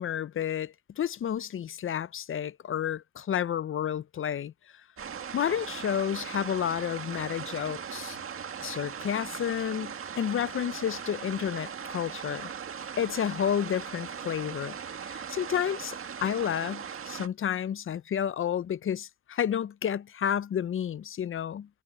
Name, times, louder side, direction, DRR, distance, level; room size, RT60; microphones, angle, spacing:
voice 1, 0.0-4.5 5.3-8.2 8.6-12.5 13.0-14.8 15.1-21.7, left 9 dB, 45° left, 0.6 m, -31 dB
sound 1, 5.0-17.3, right 7 dB, 45° right, 1.8 m, -39 dB
cardioid pair, 90°, 30 cm